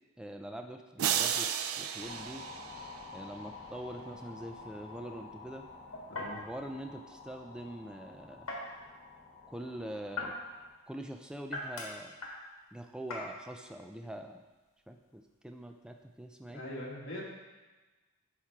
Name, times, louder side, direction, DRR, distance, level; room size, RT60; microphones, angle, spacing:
voice 1, 0.2-1.5 1.8-2.4 3.1-5.7 6.3-8.5 9.5-10.3 10.9-12.1 12.7-14.4 14.9-16.6, right 1 dB, 5° right, 4 dB, 0.4 m, -44 dB
sound 1, 1.0-3.3, right 9 dB, 85° right, 0.4 m, -33 dB
sound 2, 2.0-10.7, left 3 dB, 40° left, 1.3 m, -50 dB
sound 3, 3.6-16.6, left 2 dB, 80° left, 1.6 m, -46 dB
voice 2, 6.1-6.4 16.5-17.2, left 1 dB, 60° left, -5 dB, 2.0 m, -41 dB
11.0 x 4.5 x 3.6 m, 1.2 s
head